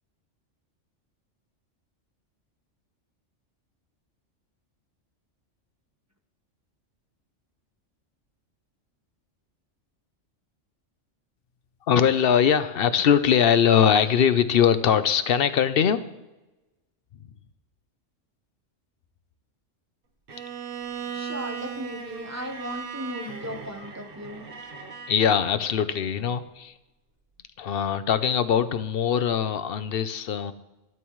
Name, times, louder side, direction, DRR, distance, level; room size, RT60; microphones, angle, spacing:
voice 1, 11.9-16.1 23.8-23.9 25.1-26.7 27.6-30.5, left 8 dB, 55° left, 12 dB, 0.8 m, -21 dB
Bowed string instrument, 20.3-25.2, right 6 dB, 50° right, 1.2 m, -37 dB
voice 2, 21.1-24.4, equal, 15° right, 4 dB, 0.9 m, -36 dB
15.5 x 12.5 x 3.2 m, 1.0 s
omnidirectional pair, 1.3 m